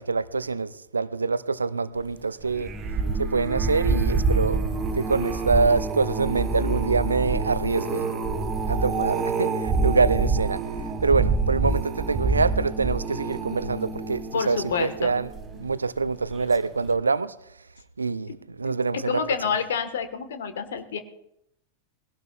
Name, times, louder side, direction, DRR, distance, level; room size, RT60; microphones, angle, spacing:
voice 1, 0.0-2.7 3.2-4.6 4.9-8.1 8.7-10.6 11.0-15.3 15.6-17.3 18.0-19.2, right 4 dB, 75° right, 0.5 m, -25 dB
sound 1, 2.4-15.8 16.3-16.6 16.9-17.0, right 3 dB, 25° right, 2.6 m, -27 dB
voice 2, 14.3-15.1 18.6-18.7 19.1-21.0, left 6 dB, 60° left, 1.5 m, -28 dB
20.5 x 16.5 x 2.4 m
figure-of-eight pair, 90°, 0 cm